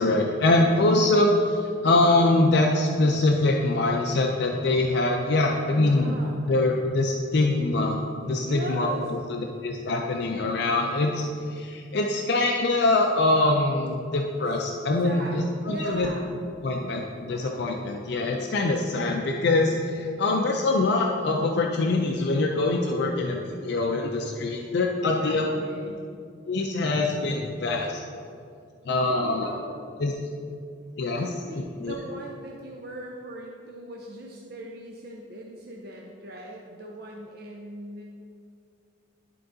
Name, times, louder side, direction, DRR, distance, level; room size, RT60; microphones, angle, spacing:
voice 1, 0.0-6.1 6.5-16.1 16.6-25.4 26.5-28.0 28.9-29.5 30.0-30.1 31.0-31.3 31.8-31.9, left 2 dB, 60° left, 1 dB, 0.5 m, -24 dB
voice 2, 5.7-6.5 8.4-9.1 15.0-16.2 25.0-26.0 29.0-29.7 31.2-38.0, right 1 dB, 55° right, 0 dB, 0.6 m, -39 dB
11.0 x 3.8 x 3.9 m, 2.3 s
head